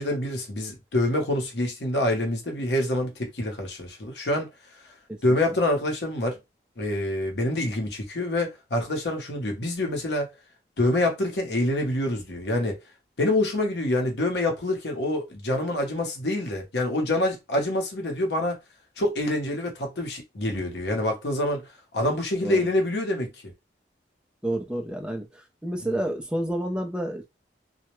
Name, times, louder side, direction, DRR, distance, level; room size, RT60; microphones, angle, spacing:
voice 1, 0.0-4.5 5.2-6.4 6.8-10.3 10.8-12.8 13.2-18.6 19.0-21.7 21.9-23.5 25.8-26.0, left 1 dB, 75° left, 0.8 m, -26 dB
voice 2, 24.4-25.3 25.6-27.3, right 1 dB, 5° right, 0.4 m, -29 dB
2.2 x 2.0 x 3.0 m
head